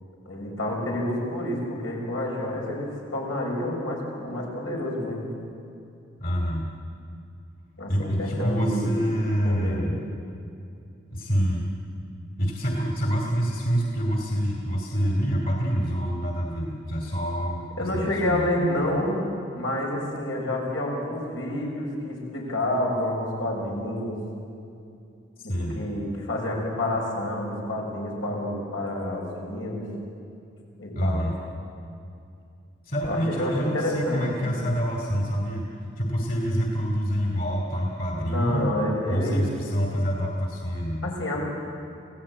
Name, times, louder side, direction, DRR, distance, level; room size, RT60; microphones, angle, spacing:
voice 1, 0.3-5.3 7.8-9.0 9.4-9.9 17.8-19.2 19.5-24.2 25.4-29.9 30.8-31.2 33.1-34.6 38.2-39.5 41.0-41.4, left 1 dB, 85° left, -1 dB, 5.9 m, -29 dB
voice 2, 6.2-6.7 7.9-10.0 11.1-11.6 12.4-18.6 25.4-25.8 30.9-31.3 32.9-35.7 36.0-38.7 39.1-41.1, equal, 45° left, 0 dB, 2.7 m, -26 dB
26.5 x 16.5 x 8.8 m, 2.5 s
head